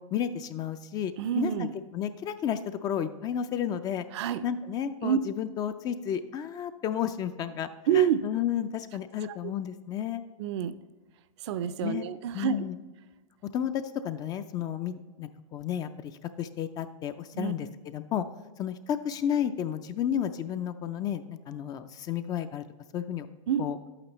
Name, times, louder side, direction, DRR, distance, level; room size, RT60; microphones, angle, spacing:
voice 1, 0.1-4.0 4.4-7.7 7.9-10.2 11.8-12.0 12.3-12.8 13.5-16.1 16.4-18.2 18.6-22.6 22.9-23.3 23.6-23.8, left 9 dB, 20° left, 11 dB, 0.3 m, -32 dB
voice 2, 1.2-1.7 4.1-4.4 5.0-5.2 7.9-8.3 9.2-9.5 10.4-10.8 11.4-12.6 17.3-17.5 23.5-23.7, right 9 dB, 55° right, 14 dB, 0.5 m, -28 dB
11.0 x 8.8 x 3.0 m, 1.3 s
hypercardioid pair, 125°, 18 cm